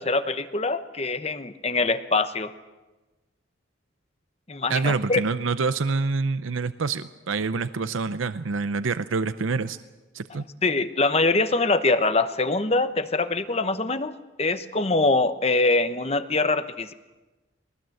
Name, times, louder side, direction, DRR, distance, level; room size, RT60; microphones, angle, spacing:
voice 1, 0.0-2.5 4.5-5.2 10.6-14.1 14.4-16.9, left 3 dB, 30° left, 11 dB, 0.9 m, -23 dB
voice 2, 4.7-9.8 10.1-10.4, right 4 dB, 85° right, 12 dB, 0.6 m, -26 dB
22.0 x 19.0 x 7.8 m, 1.2 s
head